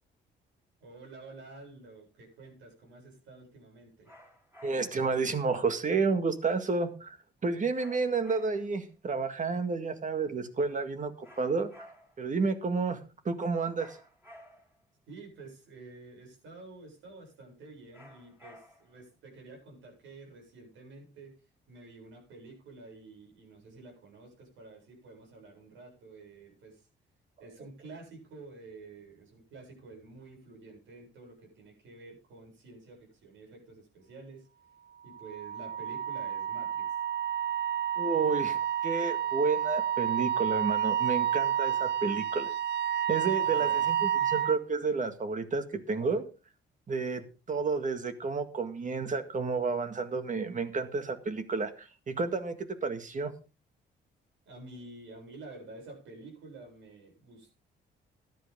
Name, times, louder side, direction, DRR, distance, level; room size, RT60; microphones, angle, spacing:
voice 1, 0.8-4.1 15.1-21.4 21.7-26.9 27.4-34.5 35.0-37.0 43.4-43.9 44.2-44.3 54.5-57.5, right 3 dB, 80° right, 1 dB, 7.5 m, -50 dB
sound 1, 4.0-5.1 7.7-8.8 11.2-12.3 13.8-14.8 17.9-19.0, equal, 10° right, 5.4 m, -54 dB
voice 2, 4.6-7.2 7.4-11.9 12.2-13.0 13.3-14.0 38.0-42.5 43.1-46.2 46.9-53.3, right 4 dB, 40° right, 8 dB, 1.9 m, -31 dB
Wind instrument woodwind instrument, 35.1-44.6, right 10 dB, 55° right, 0.5 m, -30 dB
14.0 x 11.0 x 3.7 m, 0.33 s
cardioid pair, 90°, 20 cm